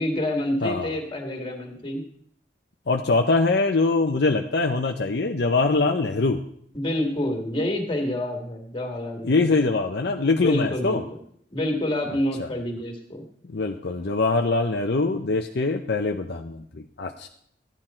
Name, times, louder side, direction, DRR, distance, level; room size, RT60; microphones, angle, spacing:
voice 1, 0.0-2.0 6.7-9.5 10.4-11.0 11.5-13.2, left 1 dB, 30° left, 1 dB, 2.2 m, -27 dB
voice 2, 0.6-1.0 2.9-6.4 9.2-11.0 12.4-12.5 13.5-17.3, left 3 dB, 65° left, 4 dB, 0.7 m, -23 dB
13.5 x 9.9 x 4.4 m, 0.66 s
head